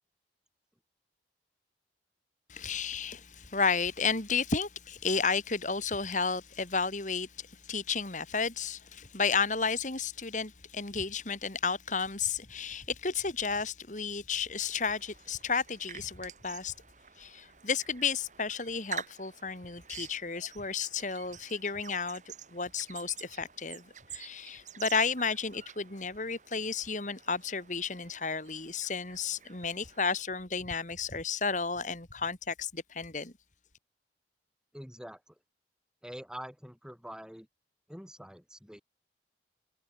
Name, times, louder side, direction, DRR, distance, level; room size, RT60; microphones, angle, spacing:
voice 1, 2.5-16.7 17.2-22.2 22.5-23.8 24.1-33.3, left 5 dB, 45° left, 2.6 m, -32 dB
sound 1, 14.6-30.2, right 8 dB, 45° right, 3.4 m, -49 dB
voice 2, 34.7-35.4 36.0-37.5 37.9-38.8, equal, 5° right, 7.1 m, -45 dB
head